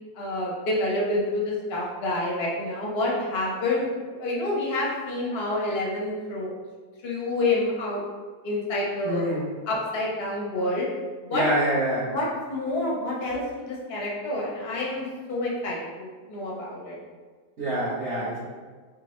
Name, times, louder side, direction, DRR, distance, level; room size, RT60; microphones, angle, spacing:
voice 1, 0.1-6.5 7.0-8.0 8.4-9.2 9.7-10.9 11.3-11.4 12.1-17.0, left 2 dB, 45° left, -4 dB, 0.9 m, -28 dB
voice 2, 9.0-9.5 11.3-12.1 17.6-18.4, right 1 dB, 45° right, -10 dB, 1.1 m, -26 dB
3.7 x 3.6 x 3.0 m, 1.5 s
omnidirectional pair, 1.9 m